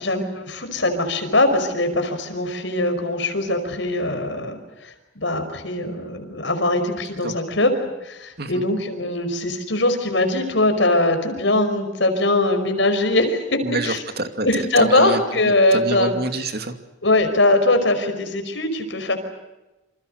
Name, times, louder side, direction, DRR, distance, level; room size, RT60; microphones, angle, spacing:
voice 1, 0.0-14.0 14.4-16.1 17.0-19.2, left 2 dB, 65° left, 7 dB, 5.3 m, -21 dB
voice 2, 13.6-16.8, right 2 dB, 55° right, 7 dB, 2.5 m, -27 dB
28.5 x 27.0 x 6.6 m, 1.0 s
head